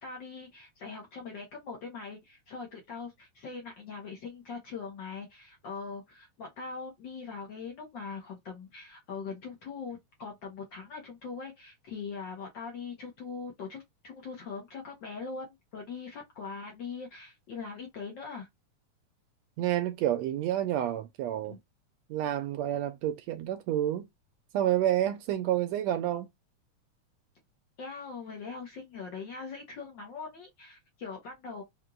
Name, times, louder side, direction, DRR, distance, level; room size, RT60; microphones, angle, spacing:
voice 1, 0.0-18.5 21.4-21.6 27.8-31.6, left 5 dB, 75° left, 1.0 m, -41 dB
voice 2, 19.6-21.6 22.1-24.1 24.5-26.3, right 12 dB, 80° right, 1.6 m, -29 dB
5.2 x 2.9 x 2.4 m
omnidirectional pair, 3.5 m